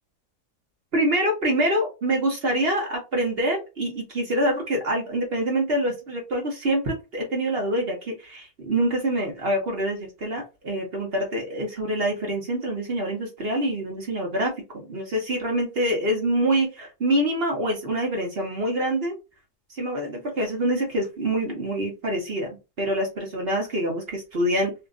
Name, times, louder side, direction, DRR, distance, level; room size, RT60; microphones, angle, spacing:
voice 1, 0.9-19.2 19.7-24.7, right 1 dB, 45° right, 1 dB, 1.1 m, -26 dB
2.8 x 2.5 x 2.4 m, 0.26 s
omnidirectional pair, 1.5 m